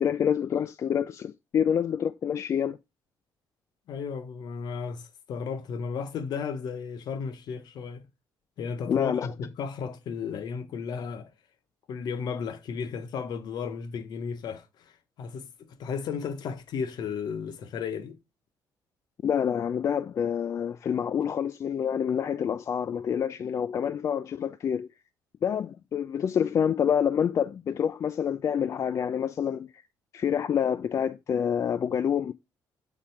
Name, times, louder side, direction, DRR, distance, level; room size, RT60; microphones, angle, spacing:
voice 1, 0.0-2.8 8.9-9.3 19.2-24.9 25.4-29.8 30.1-32.3, left 8 dB, 40° left, 0.3 m, -27 dB
voice 2, 3.9-8.0 8.6-11.3 11.9-18.2, left 6 dB, 60° left, 0.9 m, -34 dB
7.3 x 3.6 x 4.4 m
cardioid pair, 115°, 8 cm